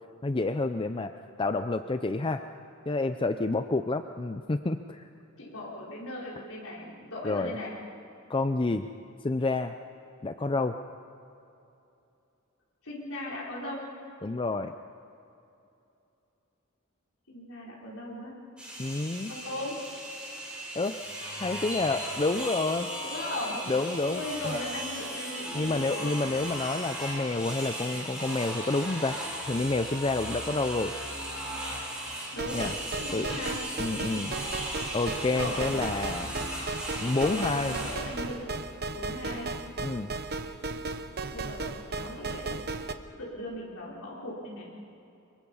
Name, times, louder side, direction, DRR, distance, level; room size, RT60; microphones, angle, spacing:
voice 1, 0.2-1.1 1.4-2.4 2.9-5.1 7.2-7.5 8.3-8.9 9.2-9.7 10.2-10.8 14.2-14.7 18.8-19.3 20.7-22.9 23.7-24.6 25.5-29.2 29.5-30.9 32.5-32.7 33.1-33.3 33.8-34.3 34.9-36.3 37.0-37.8 39.8-40.1, left 3 dB, 25° left, 9 dB, 0.5 m, -29 dB
voice 2, 5.4-7.7 12.8-13.9 17.3-18.4 19.3-19.8 23.0-23.6 24.1-26.1 32.3-33.6 33.9-34.3 35.3-35.8 37.2-38.5 38.9-39.5 41.3-42.6 43.2-44.7, left 1 dB, 80° left, -5 dB, 4.6 m, -38 dB
sound 1, 18.6-37.9, right 1 dB, 5° right, 6.6 m, -37 dB
sound 2, 32.4-42.9, right 3 dB, 50° right, 1.0 m, -36 dB
25.0 x 22.5 x 5.5 m, 2.8 s
head